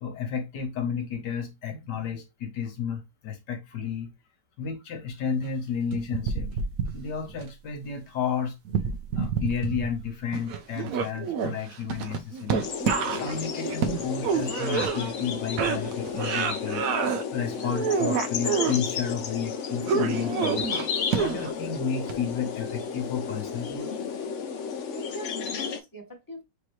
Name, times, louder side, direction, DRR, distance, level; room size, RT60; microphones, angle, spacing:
voice 1, 0.0-4.1 4.6-6.6 6.9-8.6 9.1-12.7 13.0-16.9 17.3-20.7 21.1-24.0, left 7 dB, 75° left, 1.6 m, -32 dB
sound 1, 5.9-7.4 8.7-10.1 10.3-15.3 15.6-17.2 17.6-18.8 19.9-21.6 22.1-22.2, right 6 dB, 65° right, 0.9 m, -28 dB
sound 2, 12.6-25.8, left 6 dB, 60° left, 0.8 m, -32 dB
voice 2, 24.9-26.4, left 1 dB, 15° left, 0.8 m, -42 dB
5.0 x 2.9 x 3.1 m
omnidirectional pair, 1.9 m